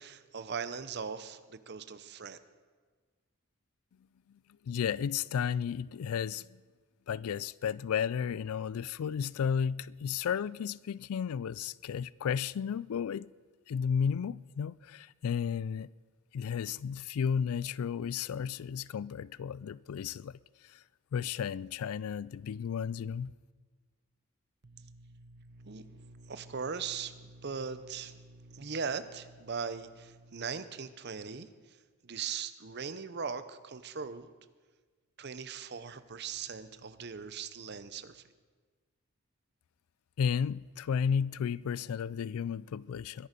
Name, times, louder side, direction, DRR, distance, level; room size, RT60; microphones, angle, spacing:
voice 1, 0.0-2.4 24.6-31.5 32.0-34.3 35.2-38.2, right 6 dB, 50° right, 0.7 m, -40 dB
voice 2, 4.7-6.5 7.1-13.3 13.7-15.9 16.3-20.4 20.7-20.8 21.1-23.3 40.2-43.3, left 7 dB, 75° left, 0.3 m, -33 dB
21.5 x 10.5 x 5.2 m
head